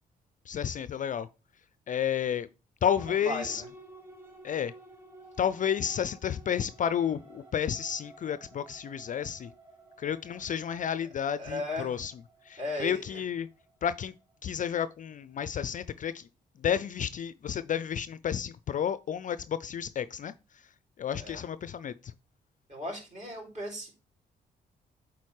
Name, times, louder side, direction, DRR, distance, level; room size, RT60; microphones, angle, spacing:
voice 1, 0.5-1.3 1.9-2.5 2.8-3.6 4.4-4.7 5.4-9.5 10.0-12.1 12.5-13.5 13.8-14.1 14.4-16.3 16.6-20.3 21.0-22.1, left 8 dB, 40° left, 0.4 m, -31 dB
sound 1, 2.8-14.8, right 2 dB, 10° right, 3.3 m, -53 dB
voice 2, 3.1-3.7 11.0-11.1 11.4-11.9 12.6-13.2 21.2-21.4 22.7-23.9, left 1 dB, 35° right, 4.0 m, -36 dB
8.2 x 4.1 x 3.1 m
hypercardioid pair, 45°, 20 cm